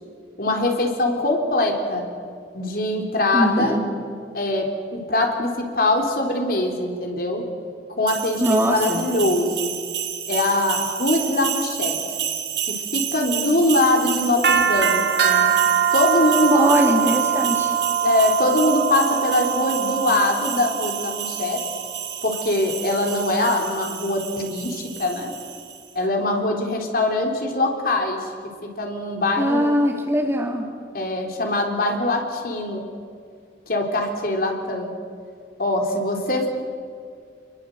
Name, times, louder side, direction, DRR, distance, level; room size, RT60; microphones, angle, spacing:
voice 1, 0.4-2.1 2.5-3.8 4.3-7.4 7.9-9.7 10.3-12.0 12.7-15.5 15.9-16.7 18.0-21.6 22.2-25.3 25.9-28.3 28.6-29.8 30.9-32.8 33.7-34.9 35.6-36.5, left 2 dB, 55° left, 2 dB, 3.9 m, -22 dB
voice 2, 3.3-3.9 8.4-9.0 16.5-17.7 29.4-30.7, equal, 15° right, 1 dB, 2.9 m, -21 dB
sound 1, 8.1-25.8, right 8 dB, 70° right, 3.1 m, -25 dB
29.0 x 22.0 x 8.0 m, 2.2 s
head